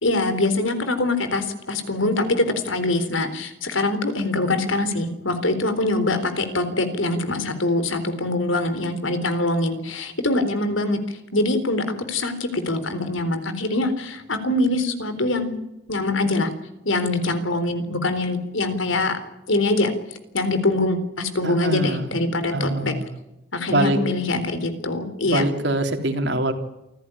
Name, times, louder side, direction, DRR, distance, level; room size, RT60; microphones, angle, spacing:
voice 1, 0.0-11.0 11.3-15.5 15.9-16.5 16.9-19.2 19.5-19.9 20.3-22.9 23.5-25.5, left 2 dB, 75° left, 10 dB, 3.9 m, -23 dB
voice 2, 21.4-22.1 22.5-23.1 23.7-24.0 25.3-26.5, right 1 dB, 60° right, 5 dB, 3.5 m, -23 dB
28.0 x 15.5 x 9.9 m, 0.91 s
head